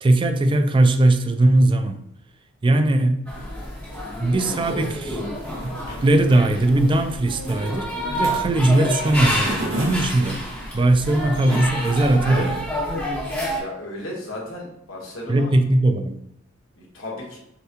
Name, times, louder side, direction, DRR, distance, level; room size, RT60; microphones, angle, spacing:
voice 1, 0.0-2.0 2.6-3.2 4.2-5.2 5.6-7.9 8.1-10.4 10.7-12.7 15.3-16.1, right 2 dB, 25° right, 8 dB, 0.3 m, -19 dB
sound 1, 3.3-13.6, equal, 5° left, 0.9 m, -29 dB
sound 2, 5.3-12.6, right 1 dB, 80° right, 1.2 m, -35 dB
voice 2, 13.5-15.5 16.8-17.4, left 1 dB, 75° left, -3 dB, 1.4 m, -35 dB
6.5 x 2.2 x 2.8 m, 0.78 s
head